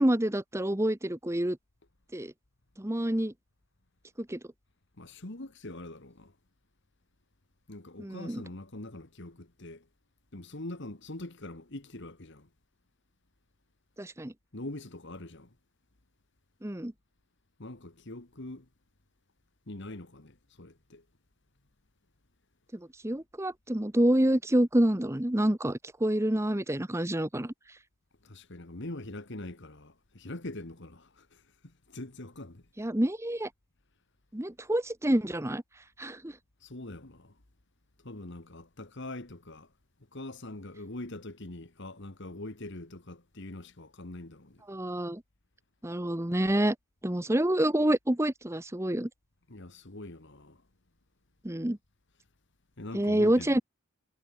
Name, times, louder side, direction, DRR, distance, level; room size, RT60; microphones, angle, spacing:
voice 1, 0.0-1.6 2.1-2.3 2.8-3.3 4.2-4.4 8.0-8.4 14.0-14.3 16.6-16.9 23.0-27.5 32.8-33.5 34.3-35.6 36.0-36.3 44.7-45.2 45.8-46.7 47.0-49.1 51.4-51.8 52.9-53.6, right 1 dB, 10° right, 0.9 m, -27 dB
voice 2, 5.0-6.3 7.7-9.9 10.3-12.5 14.5-15.5 17.6-18.7 19.7-21.0 28.2-32.6 36.6-37.4 38.0-39.7 40.1-44.6 49.5-50.6 52.8-53.6, left 2 dB, 50° left, 1.8 m, -43 dB
head